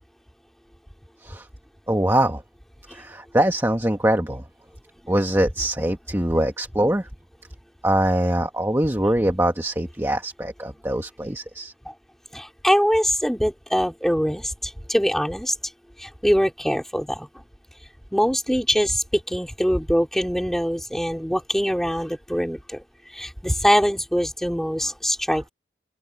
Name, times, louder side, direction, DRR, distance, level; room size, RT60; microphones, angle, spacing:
voice 1, 1.9-2.4 2.9-4.4 5.1-7.1 7.8-11.7 25.3-25.4, right 1 dB, 15° right, 1.4 m, -23 dB
voice 2, 12.3-15.5 16.0-17.3 18.1-22.8 23.1-25.5, equal, ahead, 4.1 m, -23 dB
head